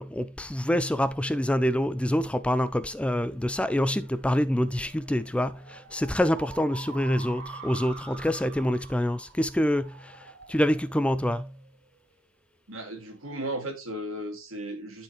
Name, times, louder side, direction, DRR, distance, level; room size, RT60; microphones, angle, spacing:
voice 1, 0.0-10.2 10.5-11.5, equal, 5° left, 0.4 m, -26 dB
sound 1, 3.1-12.0, right 4 dB, 50° right, 5.0 m, -47 dB
voice 2, 12.7-15.0, right 1 dB, 80° right, 2.4 m, -35 dB
13.0 x 4.4 x 3.0 m
head